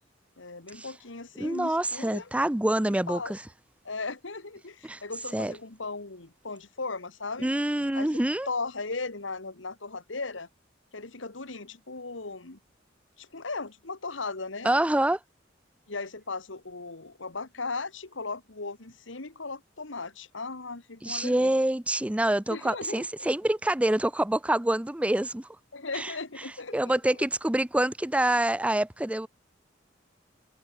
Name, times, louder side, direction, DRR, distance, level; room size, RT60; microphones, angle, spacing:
voice 1, 0.4-2.3 3.1-3.3 3.8-7.5 7.9-8.1 8.5-10.5 10.9-12.6 13.2-14.7 15.9-21.5 22.5-23.3 25.7-27.0, left 3 dB, 85° left, 2.1 m, -37 dB
voice 2, 1.4-3.4 4.8-5.0 5.3-5.5 7.4-8.5 14.6-15.2 21.0-25.5 25.9-26.1 26.7-29.3, right 1 dB, 5° right, 0.4 m, -26 dB
head